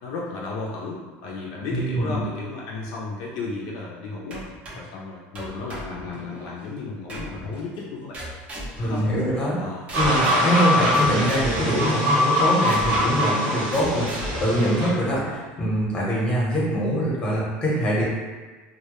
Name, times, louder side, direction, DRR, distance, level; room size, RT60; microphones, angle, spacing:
voice 1, 0.0-4.4 4.7-8.2 8.8-9.0 9.6-9.8, left 3 dB, 65° left, -3 dB, 0.4 m, -33 dB
voice 2, 1.7-2.2 8.8-9.6 9.9-14.1 14.4-18.0, equal, 20° left, -6 dB, 0.7 m, -23 dB
sound 1, 4.3-4.9 5.3-6.5 7.1-7.6 8.1-9.6 9.9-15.6, right 1 dB, 30° right, 0.5 m, -36 dB
sound 2, 9.9-14.9, left 1 dB, 65° right, 1.0 m, -23 dB
2.1 x 2.0 x 2.9 m, 1.4 s
cardioid pair, 145°, 5 cm